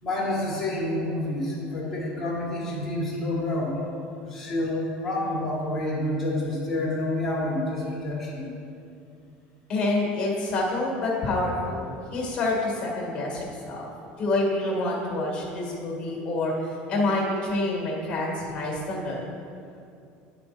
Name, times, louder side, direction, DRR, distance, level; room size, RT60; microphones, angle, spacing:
voice 1, 0.0-3.8 4.2-8.5, left 1 dB, 5° left, -8 dB, 1.8 m, -28 dB
voice 2, 9.7-13.9 14.2-19.2, left 2 dB, 25° left, -3 dB, 1.7 m, -27 dB
10.5 x 4.3 x 4.3 m, 2.6 s
cardioid pair, 175°, 4 cm